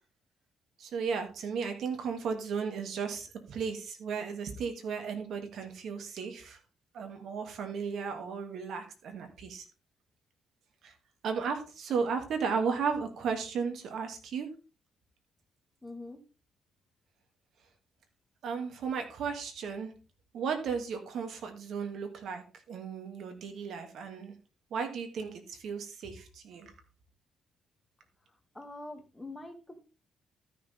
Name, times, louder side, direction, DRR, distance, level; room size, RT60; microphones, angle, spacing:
voice 1, 0.8-6.6 6.9-9.7 10.8-10.9 11.2-14.5 18.4-19.9 20.3-24.3 24.7-26.7, right 6 dB, 70° right, 5 dB, 2.6 m, -35 dB
voice 2, 15.8-16.2 28.5-29.8, left 2 dB, 10° left, 4 dB, 2.4 m, -44 dB
13.5 x 6.5 x 3.6 m, 0.33 s
cardioid pair, 90°, 0 cm